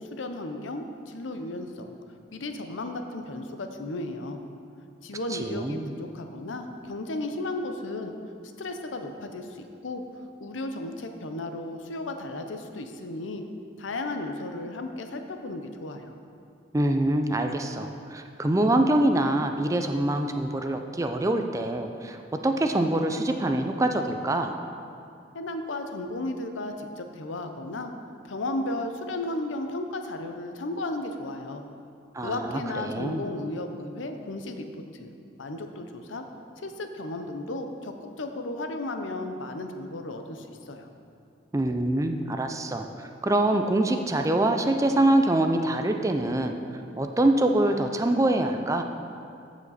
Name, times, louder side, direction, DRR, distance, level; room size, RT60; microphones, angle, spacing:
voice 1, 0.0-2.0 2.3-4.4 5.0-8.1 8.6-13.4 13.8-16.1 25.3-27.9 28.2-31.6 32.2-34.7 34.9-36.2 36.6-40.9, left 2 dB, 90° left, 6 dB, 0.7 m, -34 dB
voice 2, 5.3-5.9 16.7-22.2 22.4-24.6 32.1-33.2 41.5-46.5 47.0-48.8, right 1 dB, 15° right, 5 dB, 0.4 m, -25 dB
14.5 x 5.1 x 4.1 m, 2.5 s
head